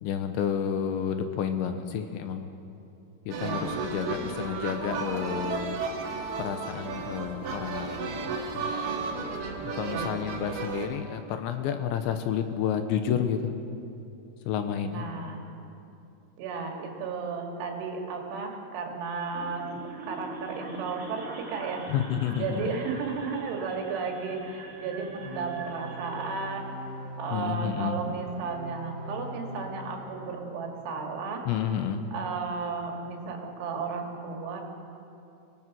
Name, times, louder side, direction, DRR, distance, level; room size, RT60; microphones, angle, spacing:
voice 1, 0.0-2.6 3.3-5.8 6.4-8.7 9.6-13.6 14.5-15.1 21.9-22.7 27.3-28.0 31.5-32.1, left 8 dB, 80° left, 7 dB, 3.0 m, -30 dB
sound 1, 3.3-10.9, right 4 dB, 60° right, 3.7 m, -33 dB
voice 2, 3.3-3.8 9.8-10.2 14.9-15.4 16.4-21.9 22.4-31.5 32.1-34.6, right 5 dB, 75° right, 1 dB, 4.5 m, -34 dB
sound 2, 19.3-26.3, right 2 dB, 35° right, 1.3 m, -43 dB
sound 3, 25.2-30.2, equal, 40° left, 6.4 m, -41 dB
26.0 x 18.5 x 6.2 m, 2.7 s
omnidirectional pair, 5.6 m